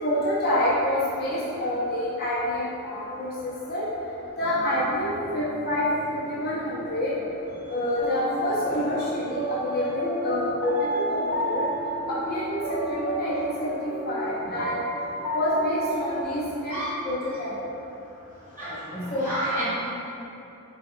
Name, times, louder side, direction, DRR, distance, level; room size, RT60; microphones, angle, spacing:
voice 1, 0.0-3.8 4.4-5.8 6.3-7.1 7.7-11.6 12.1-12.6 12.9-13.8 14.1-14.8 15.3-17.5 19.1-19.3, left 1 dB, 45° left, -8 dB, 0.5 m, -27 dB
sound 1, 4.4-16.2, right 1 dB, 70° left, 0.9 m, -32 dB
voice 2, 18.6-19.6, right 1 dB, 20° left, -12 dB, 0.9 m, -30 dB
4.0 x 2.2 x 3.6 m, 2.9 s
head